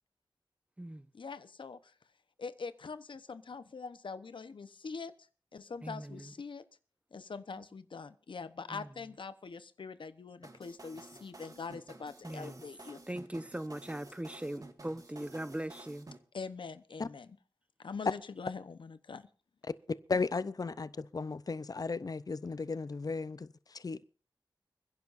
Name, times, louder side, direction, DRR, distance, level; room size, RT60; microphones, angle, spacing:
voice 1, 1.1-1.9 2.4-5.1 5.5-6.6 7.1-13.0 16.3-17.4 17.8-19.3, left 5 dB, 80° left, 0.9 m, -43 dB
voice 2, 5.8-6.3 7.6-7.7 8.7-8.9 12.2-12.6 13.1-16.1, right 1 dB, 15° right, 0.9 m, -40 dB
sound 1, 10.4-16.2, right 2 dB, 45° right, 1.8 m, -52 dB
voice 3, 20.1-24.0, left 4 dB, 50° left, 0.6 m, -35 dB
29.5 x 10.5 x 2.6 m
wide cardioid pair, 60°, 8 cm